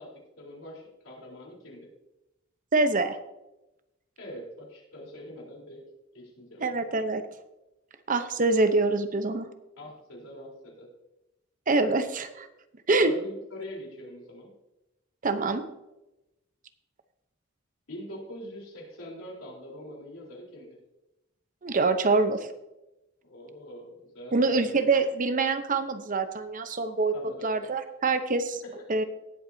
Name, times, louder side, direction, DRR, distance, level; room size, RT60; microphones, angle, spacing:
voice 1, 0.0-1.9 4.2-6.8 9.8-10.9 13.0-14.5 17.9-20.8 23.2-24.7 27.1-27.5 28.6-28.9, equal, 90° left, -2 dB, 3.9 m, -43 dB
voice 2, 2.7-3.2 6.6-7.2 8.1-9.5 11.7-12.5 12.9-13.1 15.2-15.6 21.6-22.5 24.3-27.1 27.4-28.6 28.9-29.0, right 3 dB, 40° right, 10 dB, 0.8 m, -25 dB
18.5 x 8.0 x 2.7 m, 0.95 s
head